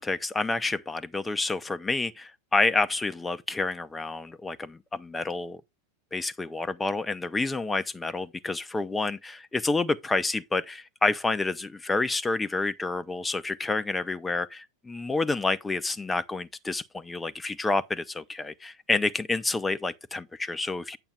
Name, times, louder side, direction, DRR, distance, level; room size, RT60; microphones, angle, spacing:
voice 1, 0.0-5.6 6.1-21.0, left 3 dB, 10° left, 0.7 m, -29 dB
8.7 x 7.8 x 3.4 m
figure-of-eight pair, 90°, 0 cm